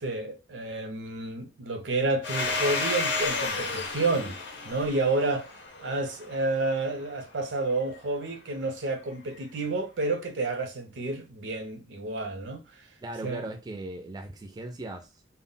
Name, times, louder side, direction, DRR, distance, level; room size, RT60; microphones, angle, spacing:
voice 1, 0.0-4.4 4.6-5.5 5.8-12.9 13.2-13.4, right 2 dB, 70° right, 0.5 m, -30 dB
Domestic sounds home sounds, 2.2-6.6, left 3 dB, 65° left, 0.5 m, -32 dB
voice 2, 13.0-15.3, right 2 dB, 20° right, 0.3 m, -38 dB
2.1 x 2.0 x 3.7 m
head